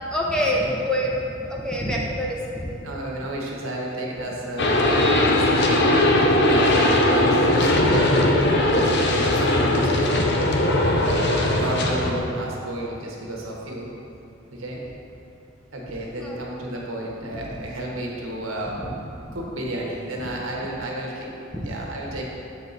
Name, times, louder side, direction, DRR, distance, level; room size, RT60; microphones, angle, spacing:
voice 1, 0.1-2.8 16.2-16.4 17.3-17.6 18.8-18.9 19.3-19.4 20.2-20.3 21.0-21.1 21.5-21.7, equal, 5° left, -3 dB, 0.6 m, -27 dB
voice 2, 2.8-6.0 6.4-10.3 10.8-13.9 14.5-14.8 15.7-19.0 19.3-21.3 21.6-22.2, right 1 dB, 85° right, -2 dB, 1.1 m, -32 dB
sound 1, 4.6-12.1, left 1 dB, 55° left, 0.6 m, -19 dB
7.6 x 4.5 x 4.0 m, 2.7 s
head